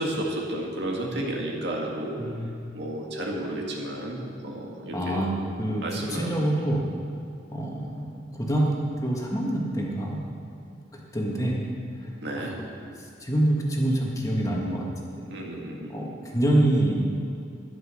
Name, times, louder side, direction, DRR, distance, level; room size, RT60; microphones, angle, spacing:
voice 1, 0.0-2.2 2.7-5.2 5.8-6.7 12.2-12.5 15.3-15.9, right 1 dB, 60° right, -1 dB, 2.0 m, -32 dB
voice 2, 2.2-2.5 4.9-5.8 6.1-6.8 7.5-8.7 9.0-10.2 10.9-11.7 12.4-12.6 13.2-14.9 15.2-15.3 15.9-17.0, right 1 dB, 15° left, -2 dB, 1.8 m, -26 dB
12.0 x 11.0 x 6.4 m, 2.5 s
head